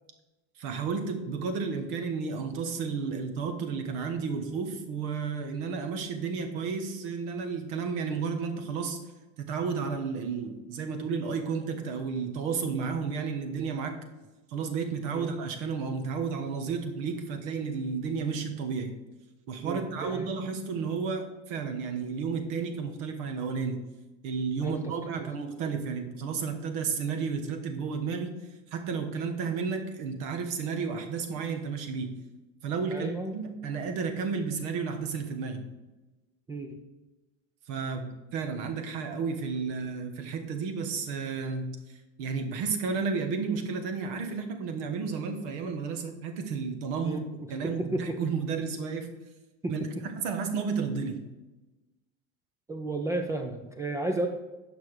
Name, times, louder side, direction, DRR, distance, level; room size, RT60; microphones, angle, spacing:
voice 1, 0.6-9.0 9.4-14.0 14.5-18.9 19.5-23.8 24.2-28.3 28.7-32.2 32.6-35.6 37.7-41.8 42.2-47.2 47.5-49.1 49.7-49.8 50.2-51.2, right 5 dB, 65° right, 6 dB, 1.3 m, -32 dB
voice 2, 19.6-20.3 24.6-25.3 32.9-33.4 36.5-36.8 47.0-48.3 49.6-50.0 52.7-54.3, right 2 dB, 10° right, 4 dB, 0.3 m, -33 dB
8.8 x 5.9 x 4.7 m, 1.1 s
cardioid pair, 160°, 32 cm